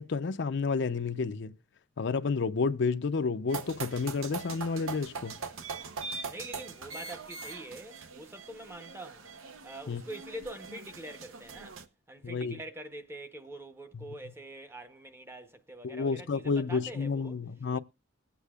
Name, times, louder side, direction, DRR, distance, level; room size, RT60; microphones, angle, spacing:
voice 1, 0.0-1.6 2.0-5.4 9.9-10.0 12.2-12.6 15.8-17.8, left 4 dB, 55° left, 0.5 m, -30 dB
sound 1, 3.5-11.8, right 4 dB, 75° right, 0.9 m, -42 dB
voice 2, 6.3-9.3 9.6-11.8 12.1-17.4, right 1 dB, 10° right, 0.8 m, -45 dB
20.5 x 8.2 x 2.3 m
head